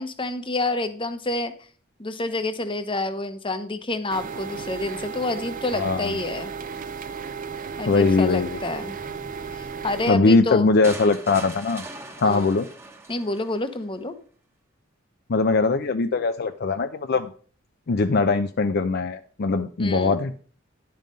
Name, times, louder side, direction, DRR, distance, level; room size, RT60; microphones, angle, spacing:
voice 1, 0.0-1.5 2.0-6.5 7.8-9.0 9.5-10.7 12.2-12.5 13.1-14.1 19.8-20.2, left 2 dB, 25° left, 9 dB, 0.9 m, -28 dB
sound 1, 4.1-10.1, right 6 dB, 40° right, 0.6 m, -34 dB
voice 2, 5.7-6.2 7.9-8.6 10.1-11.8 12.2-12.7 15.3-17.3 17.9-20.3, left 3 dB, 50° left, 9 dB, 0.5 m, -21 dB
sound 2, 10.8-13.8, right 2 dB, 10° right, 1.1 m, -40 dB
10.5 x 5.6 x 5.2 m, 0.43 s
head